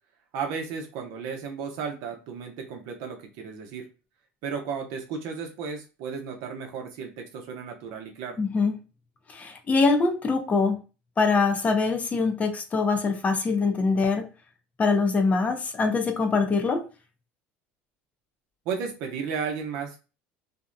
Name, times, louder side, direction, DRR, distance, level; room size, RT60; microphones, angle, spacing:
voice 1, 0.3-3.8 4.4-8.4 18.7-20.0, right 6 dB, 70° right, 0.7 m, -34 dB
voice 2, 8.4-8.8 9.3-10.8 11.2-14.3 14.8-16.9, left 4 dB, 25° left, 0.5 m, -23 dB
2.7 x 2.0 x 2.5 m
supercardioid pair, 105°, 6 cm